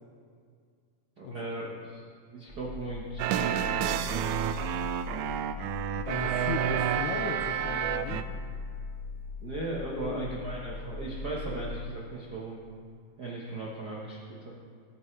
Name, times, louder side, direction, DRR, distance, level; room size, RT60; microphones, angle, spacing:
voice 1, 1.2-2.0 2.3-4.4 9.4-12.6 13.2-14.5, right 2 dB, 70° right, -4 dB, 0.9 m, -37 dB
sound 1, 2.5-11.8, left 4 dB, 15° right, 1.2 m, -40 dB
sound 2, 3.2-8.2, right 10 dB, 90° right, 1.7 m, -30 dB
voice 2, 6.0-8.2 9.9-10.3, left 6 dB, 80° left, 3 dB, 1.8 m, -37 dB
19.0 x 9.4 x 3.3 m, 2.2 s
omnidirectional pair, 4.0 m